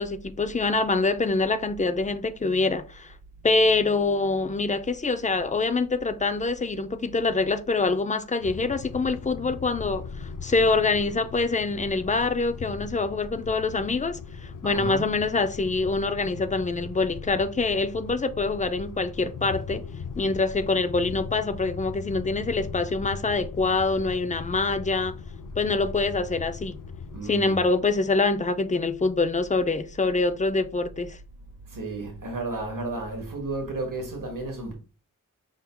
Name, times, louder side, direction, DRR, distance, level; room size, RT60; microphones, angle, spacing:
voice 1, 0.0-3.1 3.4-19.8 20.2-25.1 25.6-26.8 27.2-31.2, left 3 dB, 25° left, 0.4 m, -25 dB
sound 1, 8.4-27.2, left 5 dB, 80° left, 0.5 m, -39 dB
voice 2, 14.6-15.1 27.1-27.7 31.7-34.7, right 2 dB, 75° right, 1.4 m, -33 dB
5.5 x 3.6 x 2.2 m
wide cardioid pair, 90°, 32 cm